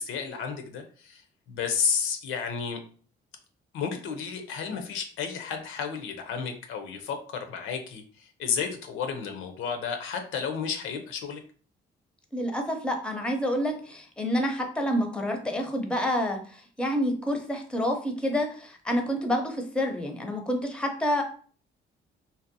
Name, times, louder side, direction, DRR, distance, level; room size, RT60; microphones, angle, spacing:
voice 1, 0.0-2.8 3.7-11.4, left 6 dB, 85° left, 6 dB, 0.5 m, -32 dB
voice 2, 12.3-21.2, equal, 5° left, 3 dB, 0.5 m, -28 dB
2.6 x 2.1 x 2.6 m, 0.43 s
cardioid pair, 90°, 20 cm